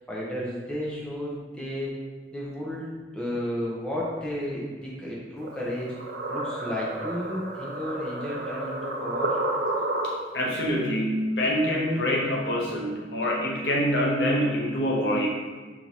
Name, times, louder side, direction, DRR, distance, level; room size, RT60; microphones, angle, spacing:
voice 1, 0.1-1.9 2.3-5.9 6.3-9.4, left 1 dB, 5° left, -6 dB, 0.8 m, -33 dB
sound 1, 5.4-10.5, right 2 dB, 70° right, 0.6 m, -31 dB
voice 2, 10.0-15.3, equal, 85° left, -1 dB, 0.8 m, -25 dB
4.6 x 2.8 x 4.1 m, 1.3 s
head